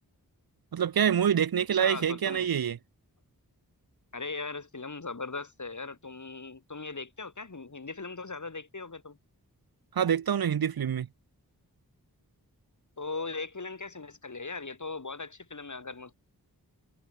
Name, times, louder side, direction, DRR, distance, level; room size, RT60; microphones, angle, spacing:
voice 1, 0.7-2.8 9.9-11.1, right 8 dB, 65° right, 0.7 m, -26 dB
voice 2, 1.7-2.5 4.1-9.2 13.0-16.1, left 3 dB, 50° left, 3.3 m, -39 dB
wide cardioid pair, 50°, 38 cm